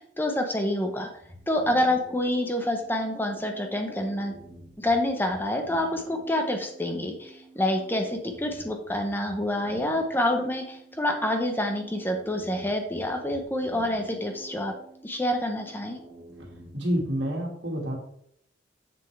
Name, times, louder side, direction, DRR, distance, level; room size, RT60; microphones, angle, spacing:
voice 1, 0.2-1.1 1.5-4.3 4.8-14.7 15.0-16.0, left 1 dB, 10° left, 4 dB, 0.8 m, -27 dB
sound 1, 1.1-17.2, right 1 dB, 10° right, 1.4 m, -49 dB
voice 2, 16.7-18.0, equal, 75° right, 1 dB, 1.9 m, -28 dB
7.0 x 6.8 x 3.3 m, 0.69 s
head